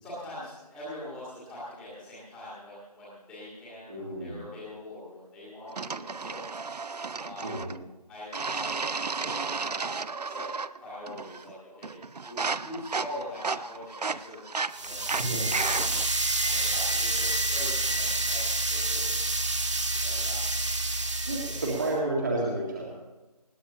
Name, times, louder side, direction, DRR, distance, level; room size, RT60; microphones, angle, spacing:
voice 1, 0.0-6.4 7.2-7.5 8.1-8.9 9.1-9.9 10.2-10.5 10.8-14.4 14.8-15.1 15.6-15.7 16.4-19.2 20.0-20.4 21.5-21.7, left 1 dB, ahead, -16 dB, 1.8 m, -43 dB
voice 2, 3.9-4.4 7.4-7.7 15.2-15.4 21.2-23.0, right 2 dB, 30° right, -3 dB, 1.8 m, -31 dB
sound 1, 5.8-7.8 8.3-10.8 11.1-11.5 11.8-16.1, right 4 dB, 75° right, 0.6 m, -33 dB
sound 2, 14.7-21.9, right 2 dB, 45° right, 1.5 m, -28 dB
20.0 x 15.5 x 2.9 m, 1.1 s
figure-of-eight pair, 165°, 21 cm